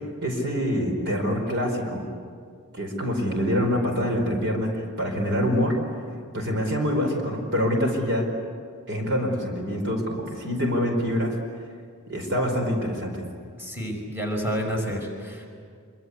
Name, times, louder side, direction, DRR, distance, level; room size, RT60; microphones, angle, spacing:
voice 1, 0.2-2.0 2.7-4.7 5.0-5.7 6.3-8.3 8.9-11.4 12.1-13.2, equal, 55° right, 2 dB, 4.9 m, -25 dB
voice 2, 13.6-15.5, equal, 10° right, -1 dB, 5.2 m, -29 dB
26.5 x 25.0 x 8.4 m, 2.2 s
head